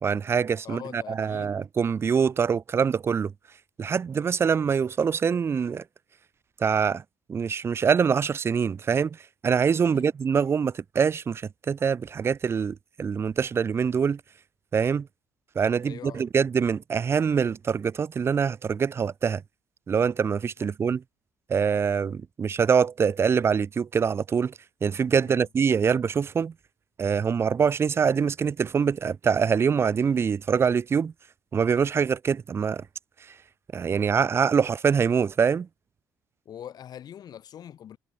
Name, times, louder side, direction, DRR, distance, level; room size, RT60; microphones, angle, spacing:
voice 1, 0.0-3.3 3.8-5.8 6.6-7.0 7.3-9.2 9.4-14.2 14.7-15.1 15.6-19.4 19.9-21.0 21.5-24.5 24.8-26.5 27.0-31.1 31.5-32.8 33.7-35.7, right 6 dB, 30° right, 0.4 m, -24 dB
voice 2, 0.6-1.6 9.8-10.1 15.8-16.3 20.6-20.7 25.2-25.5 36.5-38.0, left 10 dB, 55° left, 2.4 m, -43 dB
supercardioid pair, 70°, 8 cm